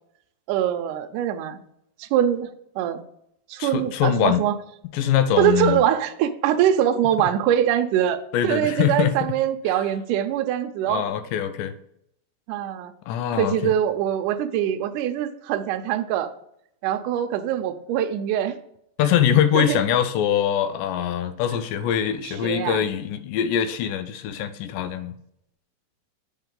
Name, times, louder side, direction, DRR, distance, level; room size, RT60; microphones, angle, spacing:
voice 1, 0.5-1.6 2.0-3.0 3.5-4.6 5.4-11.0 12.5-12.9 13.4-16.3 16.8-18.6 19.5-19.8 22.2-22.9, right 10 dB, 80° right, 7 dB, 2.0 m, -23 dB
voice 2, 3.6-4.4 4.9-5.8 8.3-9.1 10.9-11.7 13.1-13.7 19.0-25.1, left 9 dB, 80° left, 10 dB, 2.1 m, -23 dB
9.2 x 4.5 x 3.7 m, 0.74 s
omnidirectional pair, 4.1 m